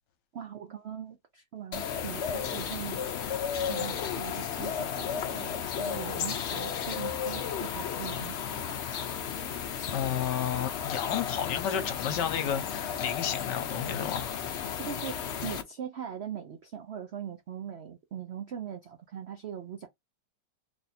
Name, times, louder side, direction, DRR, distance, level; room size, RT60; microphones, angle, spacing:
voice 1, 0.3-3.0 3.7-8.6 14.8-19.9, right 8 dB, 70° right, 0.6 m, -41 dB
sound 1, 1.7-15.6, left 8 dB, 90° left, 0.6 m, -34 dB
voice 2, 9.9-14.4, left 9 dB, 75° left, 1.4 m, -32 dB
3.4 x 2.6 x 4.1 m
omnidirectional pair, 1.9 m